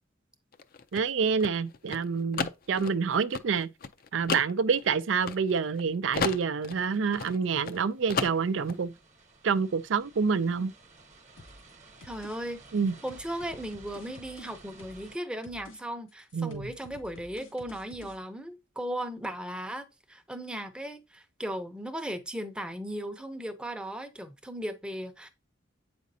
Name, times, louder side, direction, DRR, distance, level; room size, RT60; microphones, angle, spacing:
sound 1, 0.5-5.8 6.1-7.8 8.1-8.8, left 5 dB, 45° left, 0.5 m, -34 dB
voice 1, 0.9-3.7 4.1-8.9 9.4-10.7 12.7-12.9 16.3-16.7, right 5 dB, 65° right, 0.4 m, -27 dB
sound 2, 6.9-15.2, right 3 dB, 40° right, 1.0 m, -55 dB
sound 3, 11.4-11.7 12.0-12.4 12.7-15.1 15.4-15.8 16.1-18.2, left 2 dB, 90° left, 2.3 m, -51 dB
voice 2, 12.0-12.6 13.0-25.3, right 1 dB, 5° right, 0.7 m, -37 dB
8.3 x 5.1 x 2.7 m
head